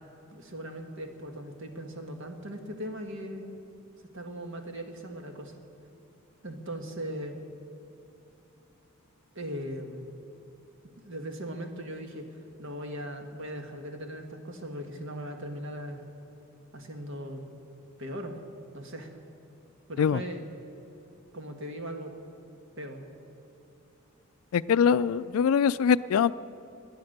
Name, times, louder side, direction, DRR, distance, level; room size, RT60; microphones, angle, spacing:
voice 1, 0.3-3.4 4.1-5.5 6.4-7.4 9.3-10.0 11.0-12.3 12.6-16.0 16.7-17.4 18.0-18.4 18.7-19.1 19.9-20.5 21.3-22.1 22.8-23.0, equal, 60° right, 4 dB, 1.6 m, -39 dB
voice 2, 24.5-26.3, left 7 dB, 80° left, 17 dB, 0.3 m, -23 dB
19.5 x 10.5 x 6.6 m, 2.9 s
head